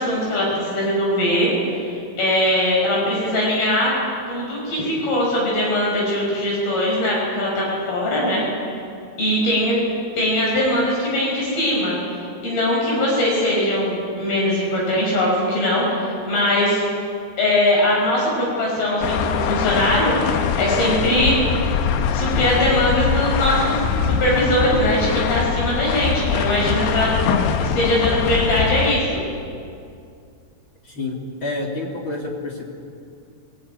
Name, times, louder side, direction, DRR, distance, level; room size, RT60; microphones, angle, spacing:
voice 1, 0.0-3.9 4.3-8.4 9.2-9.8 10.2-12.0 12.4-16.8 17.4-21.4 22.1-23.8 24.0-27.1 27.6-29.2, left 1 dB, 65° left, -3 dB, 7.4 m, -21 dB
sound 1, 19.0-28.9, left 6 dB, 90° left, 3.2 m, -22 dB
voice 2, 30.8-32.7, left 2 dB, 35° left, -1 dB, 2.9 m, -28 dB
22.0 x 19.5 x 9.5 m, 2.4 s
omnidirectional pair, 4.6 m